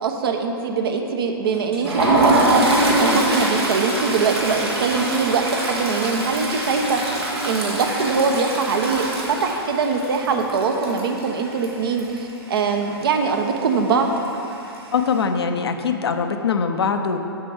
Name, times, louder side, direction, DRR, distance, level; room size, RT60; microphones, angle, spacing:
voice 1, 0.0-7.2 7.4-14.1, right 5 dB, 70° right, 4 dB, 0.9 m, -22 dB
Toilet flush, 1.5-12.3 12.6-12.8 13.1-13.3 14.2-14.8, right 1 dB, 90° right, 1.8 m, -23 dB
voice 2, 14.9-17.2, left 5 dB, 85° left, 6 dB, 0.7 m, -22 dB
7.5 x 6.8 x 4.9 m, 2.8 s
hypercardioid pair, 120°, 13 cm